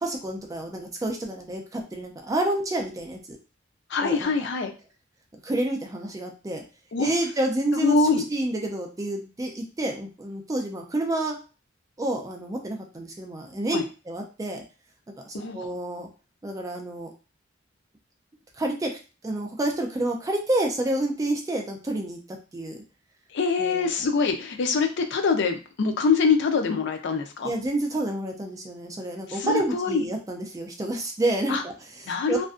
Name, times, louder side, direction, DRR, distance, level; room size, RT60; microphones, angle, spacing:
voice 1, 0.0-3.4 4.0-4.3 5.4-6.6 7.0-11.4 12.0-13.8 14.1-14.6 15.2-16.1 16.4-17.1 18.6-18.9 19.2-22.8 23.6-23.9 27.4-32.5, right 1 dB, 20° right, 1 dB, 0.4 m, -29 dB
voice 2, 3.9-4.7 6.9-7.1 7.7-8.2 13.7-13.8 15.3-15.7 23.3-27.5 29.3-30.0 31.5-31.6 32.1-32.5, left 4 dB, 65° left, 5 dB, 0.4 m, -24 dB
2.5 x 2.1 x 2.4 m, 0.34 s
head